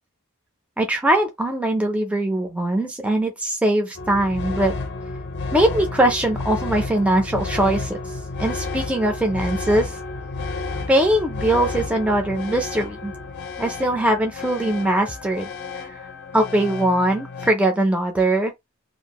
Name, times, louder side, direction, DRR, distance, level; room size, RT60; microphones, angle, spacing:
voice 1, 0.8-4.7 5.5-8.0 8.4-10.0 10.9-13.1 13.6-15.5 15.8-15.9 16.3-18.5, right 1 dB, 5° right, 0.4 m, -21 dB
sound 1, 3.9-17.5, left 3 dB, 50° left, 0.6 m, -31 dB
2.6 x 2.4 x 2.9 m
head